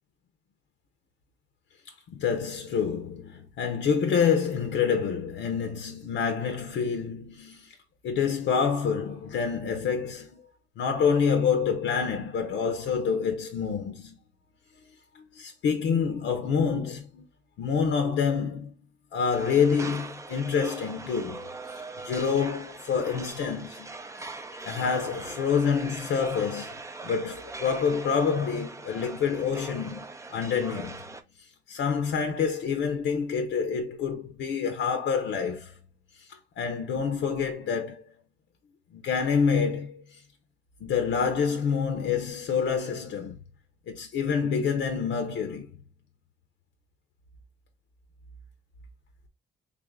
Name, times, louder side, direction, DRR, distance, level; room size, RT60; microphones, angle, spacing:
voice 1, 2.1-7.7 8.0-10.4 10.8-14.2 15.1-17.2 17.6-18.7 19.1-21.5 22.0-23.9 24.2-24.3 24.6-26.8 27.0-31.2 31.7-35.7 36.2-36.3 36.6-38.0 38.9-40.2 40.8-43.4 43.9-45.7, left 6 dB, 75° left, 0.7 m, -27 dB
sound 1, 19.3-31.2, right 3 dB, 15° right, 0.5 m, -41 dB
3.5 x 2.5 x 3.5 m
cardioid pair, 90°, 20 cm